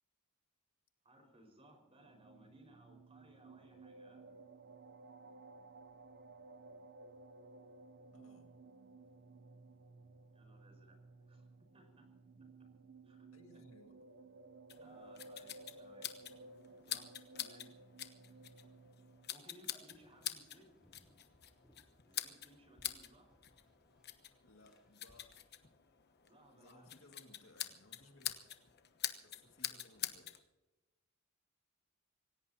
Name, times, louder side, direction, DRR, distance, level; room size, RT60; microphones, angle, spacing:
voice 1, 1.0-4.2 10.3-11.0 11.3-12.1 12.4-12.5 13.0-13.3 13.5-13.6 14.8-16.3 16.8-17.7 19.3-20.8 22.0-23.3 26.2-26.9, right 1 dB, 25° right, 3 dB, 5.0 m, -63 dB
sound 1, 2.0-19.3, right 3 dB, 50° right, 0.7 m, -57 dB
voice 2, 8.1-8.5 13.3-14.0 24.4-25.4 26.5-28.3 29.2-30.3, left 2 dB, 65° left, 4 dB, 2.1 m, -62 dB
sound 2, 14.7-30.4, left 12 dB, 50° left, 1.1 m, -46 dB
sound 3, 19.9-25.2, equal, ahead, 3.3 m, -71 dB
26.5 x 17.0 x 2.8 m, 1.1 s
head